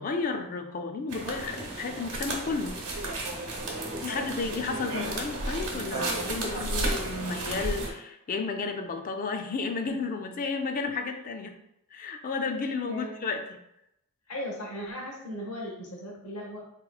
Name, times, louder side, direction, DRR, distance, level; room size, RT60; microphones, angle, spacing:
voice 1, 0.0-2.8 4.0-11.6 11.9-13.6, left 4 dB, 35° left, 6 dB, 0.3 m, -32 dB
sound 1, 1.1-7.9, right 2 dB, 80° right, 0.8 m, -33 dB
voice 2, 3.8-4.3 12.9-13.1 14.3-16.6, equal, 80° left, -3 dB, 1.0 m, -38 dB
4.0 x 2.9 x 2.3 m, 0.83 s
head